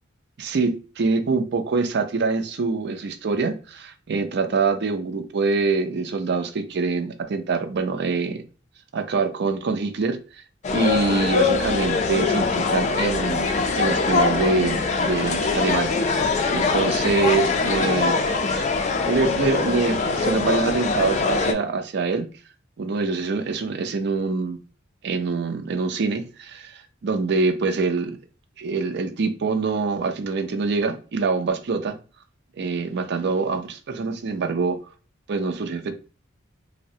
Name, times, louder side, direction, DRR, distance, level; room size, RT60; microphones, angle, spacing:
voice 1, 0.4-8.4 8.9-10.4 10.7-13.5 13.7-18.2 18.6-18.7 19.1-22.3 22.8-24.6 25.0-28.2 28.6-32.0 32.6-34.8 35.3-36.0, right 4 dB, 60° right, 0.5 m, -25 dB
sound 1, 10.6-21.5, left 4 dB, 35° left, 0.3 m, -23 dB
3.3 x 2.0 x 2.7 m
head